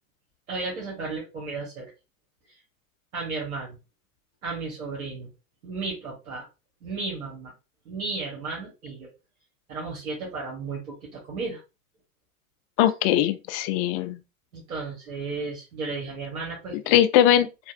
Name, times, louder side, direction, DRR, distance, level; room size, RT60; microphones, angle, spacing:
voice 1, 0.5-1.9 3.1-3.7 4.4-5.3 5.6-6.5 6.8-7.5 7.8-9.1 9.7-11.6 14.5-17.0, right 3 dB, 80° right, 1.5 m, -34 dB
voice 2, 12.8-14.2 16.9-17.7, left 11 dB, 45° left, 0.5 m, -21 dB
3.3 x 2.5 x 2.4 m
hypercardioid pair, 100°, 43 cm